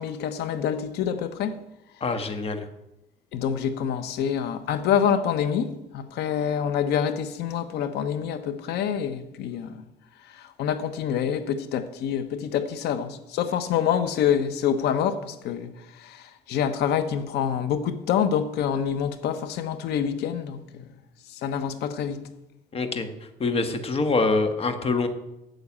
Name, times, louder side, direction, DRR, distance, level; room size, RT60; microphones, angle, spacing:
voice 1, 0.0-1.6 3.3-9.8 10.3-15.7 15.9-20.8 21.3-22.2, left 8 dB, 80° left, 1.1 m, -26 dB
voice 2, 2.0-2.7 22.7-23.1 23.4-25.1, left 3 dB, 35° left, 1.4 m, -25 dB
9.3 x 6.8 x 8.5 m
cardioid pair, 110°, 17 cm